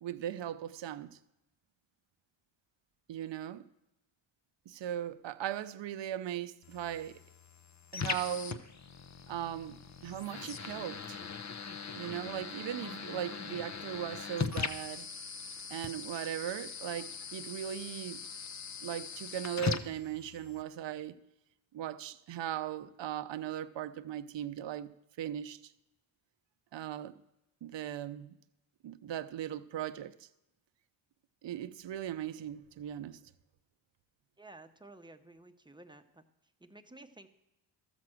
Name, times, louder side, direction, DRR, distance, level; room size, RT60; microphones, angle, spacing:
voice 1, 0.0-1.2 3.1-3.6 4.7-7.2 7.9-8.6 9.3-11.2 11.9-15.1 15.7-18.2 18.8-21.2 21.7-24.9 25.2-25.7 26.7-27.1 27.6-28.4 28.8-30.3 31.4-33.2, right 11 dB, 60° right, 0.8 m, -38 dB
sound 1, 6.6-20.6, left 6 dB, 35° left, 0.7 m, -40 dB
voice 2, 34.4-36.2 36.6-37.3, right 2 dB, 10° right, 0.9 m, -53 dB
13.0 x 5.9 x 7.7 m
cardioid pair, 90°, 49 cm